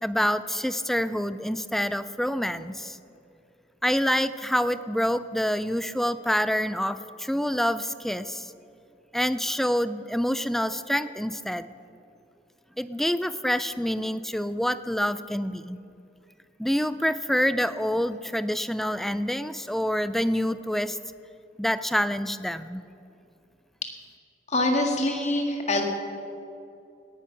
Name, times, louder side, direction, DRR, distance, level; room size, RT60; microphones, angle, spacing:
voice 1, 0.0-3.0 3.8-8.5 9.1-11.7 12.8-15.8 16.6-21.0 21.6-22.8, equal, ahead, 13 dB, 0.4 m, -27 dB
voice 2, 24.5-25.8, left 2 dB, 40° left, 3 dB, 1.9 m, -24 dB
18.0 x 10.5 x 5.9 m, 2.7 s
head